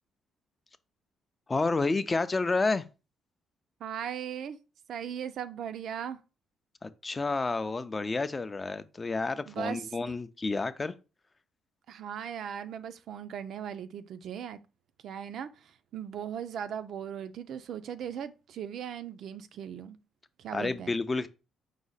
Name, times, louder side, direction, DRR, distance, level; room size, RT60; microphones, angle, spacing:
voice 1, 1.5-2.8 6.8-10.9 20.5-21.3, left 3 dB, 25° left, 0.4 m, -30 dB
voice 2, 3.8-4.6 4.9-6.2 9.5-9.9 11.9-14.6 15.0-15.5 15.9-20.0 20.4-20.9, right 8 dB, 70° right, 0.4 m, -38 dB
4.8 x 2.1 x 3.9 m
cardioid pair, 90°, 0 cm